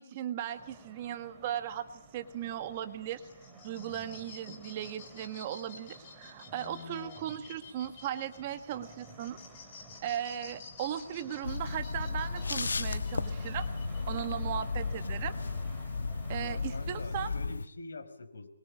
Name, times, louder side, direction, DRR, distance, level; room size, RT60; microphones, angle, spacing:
voice 1, 0.0-3.3 3.6-9.4 10.0-13.7 14.1-15.3 16.3-17.3, right 10 dB, 25° right, 9 dB, 1.4 m, -37 dB
sound 1, 0.5-17.5, right 2 dB, 5° right, 2.5 m, -53 dB
sound 2, 3.1-14.3, left 5 dB, 25° left, 3.8 m, -52 dB
sound 3, 11.4-17.7, left 4 dB, 90° left, 1.4 m, -34 dB
voice 2, 16.4-18.5, left 3 dB, 70° left, 7 dB, 5.1 m, -45 dB
26.0 x 22.0 x 8.8 m, 0.76 s
hypercardioid pair, 170°, 0 cm